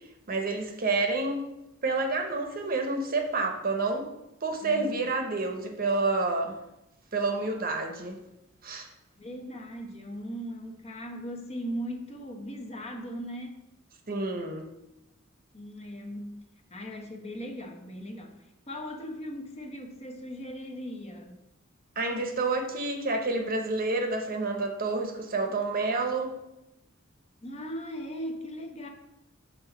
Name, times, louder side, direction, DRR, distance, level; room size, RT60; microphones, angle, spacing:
voice 1, 0.3-1.5 1.8-4.1 4.4-6.6 7.1-8.2 8.6-8.9 14.1-14.7 22.0-26.4, right 3 dB, 45° right, 4 dB, 0.8 m, -29 dB
voice 2, 9.2-13.6 15.5-16.4 16.7-21.4 27.4-28.9, equal, 30° left, 2 dB, 0.9 m, -38 dB
5.7 x 3.8 x 5.9 m, 0.90 s
head